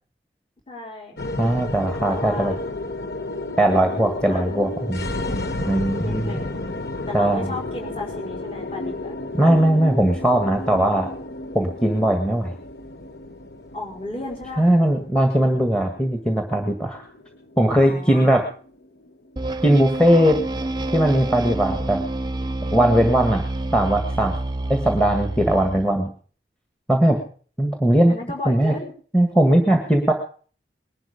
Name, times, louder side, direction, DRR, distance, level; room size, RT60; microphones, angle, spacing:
voice 1, 0.7-1.2 2.0-2.6 4.3-4.6 6.0-6.5 7.1-9.1 13.7-14.7 17.7-18.3 28.1-28.9, left 2 dB, 30° left, -1 dB, 4.8 m, -34 dB
sound 1, 1.2-19.6, left 2 dB, 65° left, 1.3 m, -32 dB
voice 2, 1.4-2.5 3.6-5.1 5.7-6.4 7.1-7.5 9.3-11.1 11.5-12.5 14.6-17.1 17.6-18.4 19.6-20.4 20.9-22.0 22.7-23.4 23.7-24.3 24.7-26.1 26.9-27.2 27.6-28.1 28.4-28.8 29.1-30.1, right 1 dB, 5° left, 4 dB, 1.6 m, -19 dB
sound 2, 19.4-25.9, right 2 dB, 25° right, 0.7 m, -28 dB
20.5 x 11.5 x 5.1 m, 0.44 s
head